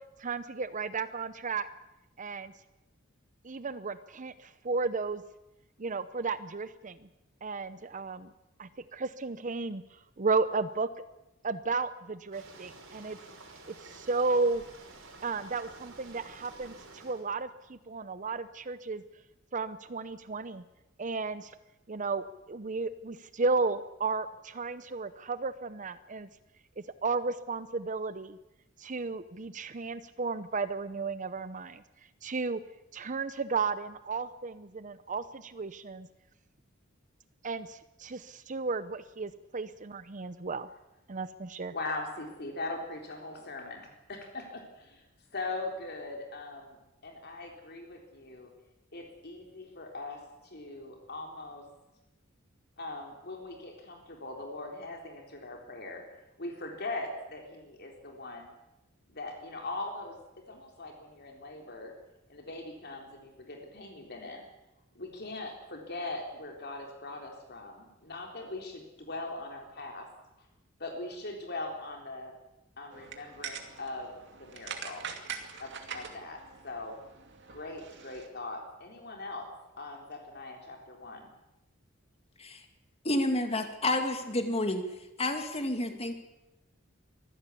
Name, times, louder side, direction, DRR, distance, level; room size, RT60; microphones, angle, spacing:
voice 1, 0.2-1.7 2.2-2.5 3.4-5.2 5.8-7.1 7.4-8.3 8.6-9.8 10.2-10.9 11.4-13.2 13.7-14.6 15.2-19.0 19.5-20.6 21.0-21.5 21.9-26.3 26.8-28.4 28.8-31.8 32.2-32.6 32.9-36.1 37.4-40.7 41.1-41.7, right 4 dB, 40° right, 13 dB, 0.7 m, -33 dB
sound 1, 12.3-17.3, right 3 dB, 75° right, 5.6 m, -51 dB
voice 2, 41.7-45.1 45.3-48.5 48.9-51.6 52.8-56.0 56.4-58.5 59.1-60.2 60.5-61.9 62.3-64.4 65.0-70.1 70.8-72.3 72.8-74.1 74.4-75.1 75.6-77.0 77.5-79.5 79.8-81.3, left 2 dB, 50° left, 2 dB, 3.7 m, -41 dB
sound 2, 72.9-78.3, right 6 dB, 60° right, 2.5 m, -43 dB
voice 3, 83.0-84.8 85.2-86.1, left 1 dB, 30° left, 6 dB, 2.5 m, -29 dB
24.0 x 15.5 x 8.4 m, 0.95 s
head